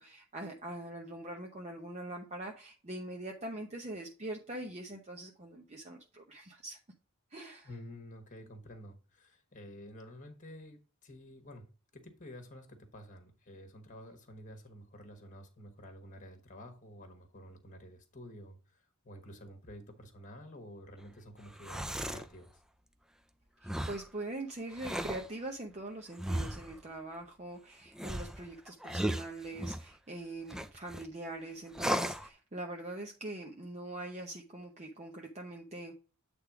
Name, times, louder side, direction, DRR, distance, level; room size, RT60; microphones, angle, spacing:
voice 1, 0.0-6.8 7.3-7.7 23.6-36.0, right 2 dB, 30° right, 0.8 m, -43 dB
voice 2, 7.6-11.7 11.9-22.6, equal, 35° left, 1.3 m, -50 dB
sound 1, 21.4-22.3 23.6-24.1 24.7-25.3 26.2-26.8 27.9-29.9 30.5-31.0 31.7-32.3, equal, 5° right, 0.4 m, -35 dB
8.6 x 3.5 x 4.7 m
head